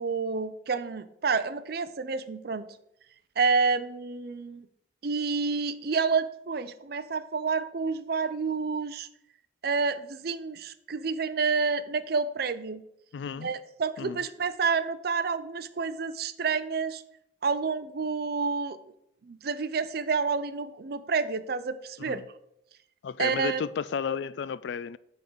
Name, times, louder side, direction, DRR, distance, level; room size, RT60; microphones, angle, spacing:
voice 1, 0.0-2.6 3.4-4.7 5.0-9.1 9.6-12.8 13.4-17.0 17.4-18.8 19.2-22.2 23.2-23.6, right 5 dB, 55° right, 0.5 m, -29 dB
voice 2, 13.1-13.5 14.0-14.2 22.0-22.2 23.0-25.0, left 6 dB, 65° left, 0.3 m, -33 dB
9.1 x 3.8 x 6.1 m
head